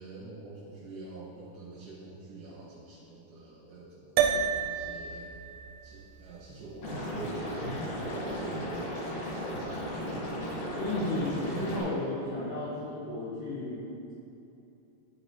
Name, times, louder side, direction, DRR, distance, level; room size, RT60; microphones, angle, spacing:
voice 1, 0.0-8.8 11.7-11.8, right 2 dB, 70° right, -9 dB, 2.9 m, -47 dB
sound 1, 4.2-8.7, right 7 dB, 85° right, 3.2 m, -33 dB
Liquid, 6.8-11.8, equal, 70° left, 1.6 m, -35 dB
voice 2, 10.8-13.8, left 2 dB, 90° left, -10 dB, 1.8 m, -34 dB
11.5 x 3.9 x 3.0 m, 2.8 s
omnidirectional pair, 5.9 m